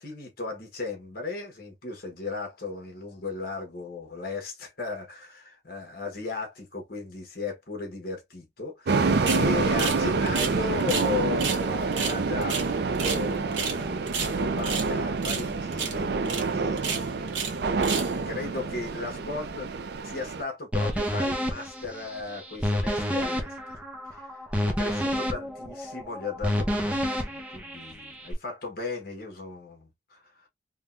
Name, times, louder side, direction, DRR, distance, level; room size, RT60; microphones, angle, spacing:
voice 1, 0.0-19.7 20.0-23.7 24.0-30.5, left 3 dB, 55° left, 1.2 m, -36 dB
sound 1, 8.9-20.4, right 4 dB, 60° right, 0.4 m, -27 dB
sound 2, 9.3-9.5 9.8-10.0 10.3-11.1 11.4-11.6 11.9-13.2 13.5-13.8 14.1-14.9 15.2-15.5 15.7-16.0 16.2-16.4 16.8-17.5 17.8-18.1, right 6 dB, 80° right, 1.0 m, -31 dB
sound 3, 20.7-28.3, equal, 5° right, 0.6 m, -29 dB
3.6 x 2.3 x 2.5 m
head